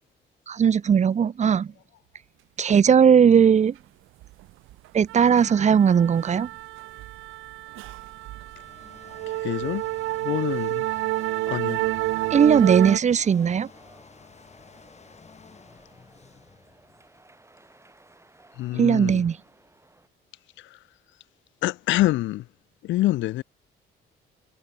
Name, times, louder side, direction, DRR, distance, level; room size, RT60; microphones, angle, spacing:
voice 1, 0.5-1.7 2.6-3.7 4.9-6.5 12.3-13.7 18.7-19.4, right 7 dB, 35° right, 0.6 m, -18 dB
sound 1, 4.2-4.4 4.7-13.0, right 18 dB, 90° right, 0.6 m, -30 dB
sound 2, 8.2-17.4, left 5 dB, 35° left, 2.7 m, -52 dB
voice 2, 9.4-9.8 10.2-10.9 11.5-11.8 18.6-19.2 20.6-20.8 21.6-22.4 22.8-23.4, left 16 dB, 75° left, 0.4 m, -26 dB
sound 3, 12.0-20.1, right 2 dB, 15° right, 4.0 m, -56 dB
cardioid pair, 90°, 20 cm